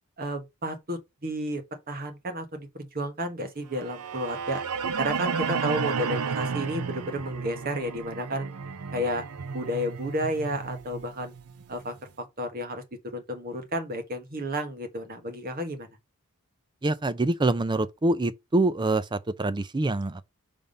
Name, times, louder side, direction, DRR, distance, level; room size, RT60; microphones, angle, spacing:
voice 1, 0.2-4.6 5.0-8.5 8.9-9.2 9.5-11.3 11.7-12.8 13.1-15.9, equal, 40° right, 1.3 m, -32 dB
sound 1, 3.8-11.9, right 5 dB, 85° right, 0.6 m, -32 dB
voice 2, 16.8-20.2, right 2 dB, 20° right, 0.4 m, -25 dB
5.3 x 3.5 x 5.2 m
head